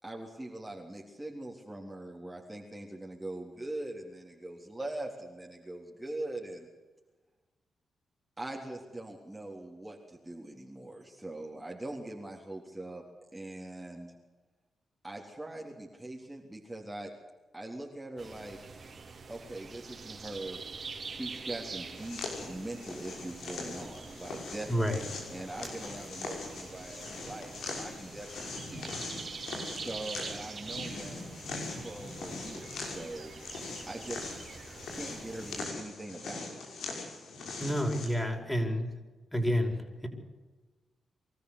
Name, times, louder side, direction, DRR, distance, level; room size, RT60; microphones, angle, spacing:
voice 1, 0.0-6.7 8.4-13.0 13.3-14.1 15.0-17.1 17.5-18.6 19.3-20.6 21.1-24.8 25.3-28.9 29.7-31.2 31.8-33.3 33.9-34.3 34.9-36.6, right 1 dB, 15° right, -1 dB, 3.6 m, -42 dB
sound 1, 18.2-35.7, right 4 dB, 50° right, 3.9 m, -45 dB
sound 2, 21.9-38.1, left 3 dB, 80° left, 5.9 m, -41 dB
voice 2, 24.7-25.0 37.6-38.9 39.3-40.1, equal, 10° left, 2 dB, 5.7 m, -29 dB
24.5 x 14.0 x 8.3 m, 1.2 s
supercardioid pair, 50°, 0 cm